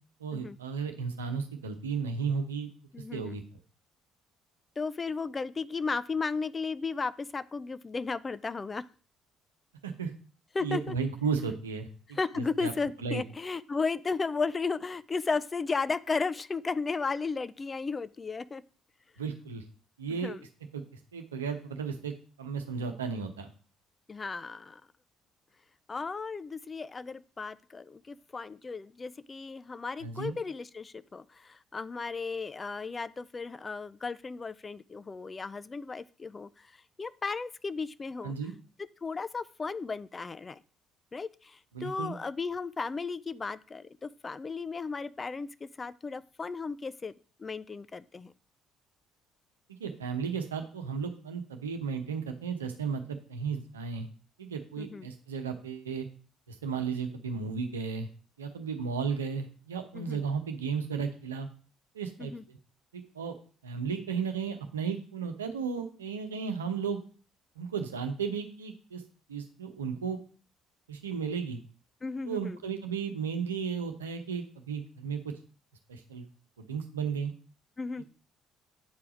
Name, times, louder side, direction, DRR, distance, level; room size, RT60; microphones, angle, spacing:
voice 1, 0.2-2.7 3.1-3.4 9.8-10.1 10.6-12.7 13.0-13.2 19.2-19.6 20.0-20.3 20.7-20.8 21.1-22.1 22.4-23.5 30.0-30.3 38.2-38.5 41.7-42.1 49.8-53.0 53.3-54.1 54.4-56.1 56.5-58.1 58.4-61.5 61.9-62.6 62.9-63.3 63.6-67.0 67.6-69.0 69.3-70.2 70.9-71.6 72.2-75.2 75.9-76.3 76.6-77.3, right 6 dB, 85° right, 6 dB, 1.0 m, -34 dB
voice 2, 2.9-3.4 4.8-8.8 10.5-10.9 12.2-18.6 20.1-20.4 24.1-24.8 25.9-36.7 37.0-38.3 39.0-40.6 41.1-47.1 47.4-48.3 54.8-55.1 59.9-60.2 62.2-62.4 72.0-72.6 77.8-78.0, left 4 dB, 30° left, 17 dB, 0.5 m, -35 dB
9.3 x 4.8 x 5.0 m, 0.40 s
figure-of-eight pair, 50°, 0 cm